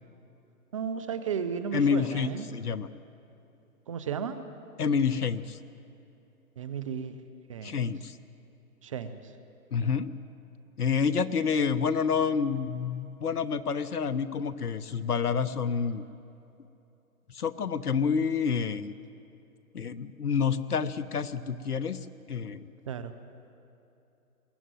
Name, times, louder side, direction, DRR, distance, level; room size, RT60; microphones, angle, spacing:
voice 1, 0.7-2.5 3.9-4.4 6.6-7.2 7.5-7.8 8.8-9.2 22.9-23.1, right 7 dB, 20° right, 11 dB, 0.7 m, -34 dB
voice 2, 1.7-2.9 4.8-5.6 7.6-8.2 9.7-10.1 10.8-16.0 17.3-18.9 19.7-22.0 22.3-22.7, left 6 dB, 80° left, 14 dB, 1.2 m, -28 dB
21.5 x 17.0 x 9.2 m, 2.9 s
hypercardioid pair, 150°, 45 cm